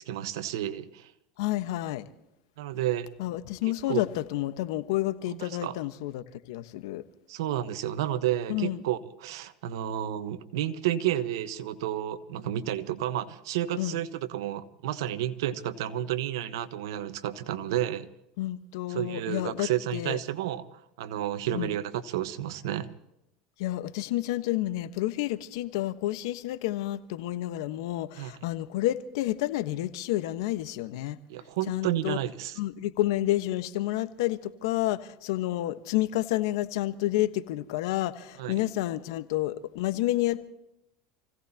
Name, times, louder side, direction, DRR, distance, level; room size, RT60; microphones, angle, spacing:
voice 1, 0.1-1.1 2.6-3.1 3.9-4.0 5.4-5.7 7.3-18.1 18.9-22.9 28.2-28.3 31.3-32.6 38.4-38.6, right 12 dB, 80° right, 1.2 m, -31 dB
voice 2, 1.4-2.0 3.2-7.0 8.5-8.8 13.8-14.0 18.4-20.2 21.5-21.7 23.6-31.2 31.7-32.2 32.6-40.5, left 15 dB, 75° left, 1.2 m, -30 dB
28.5 x 17.0 x 2.9 m
supercardioid pair, 115°, 2 cm